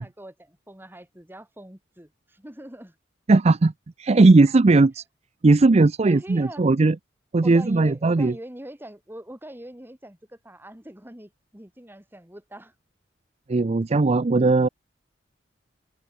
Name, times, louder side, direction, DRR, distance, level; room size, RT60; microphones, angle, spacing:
voice 1, 0.0-2.9 6.0-6.6 7.4-12.7, right 1 dB, 10° right, 2.7 m, -42 dB
voice 2, 3.3-3.7 4.0-5.0 5.4-7.0 7.3-8.3 13.5-14.7, right 3 dB, 35° right, 0.5 m, -18 dB
head